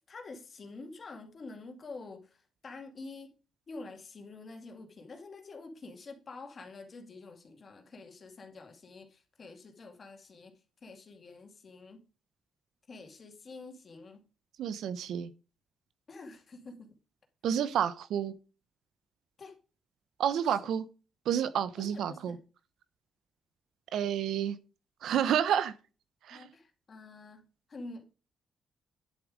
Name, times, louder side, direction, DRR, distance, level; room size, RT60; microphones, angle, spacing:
voice 1, 0.1-2.2 2.6-3.3 3.7-9.1 9.4-10.5 10.8-12.0 12.9-14.2 16.1-16.9 19.4-19.5 21.8-22.4 26.3-27.4 27.7-28.1, left 3 dB, 35° left, 2.3 m, -47 dB
voice 2, 14.6-15.3 17.4-18.3 20.2-20.8 21.3-22.4 23.9-24.6 25.0-25.7 26.3-26.4, right 9 dB, 85° right, 0.9 m, -29 dB
10.5 x 7.5 x 5.0 m
wide cardioid pair, 175°, 0 cm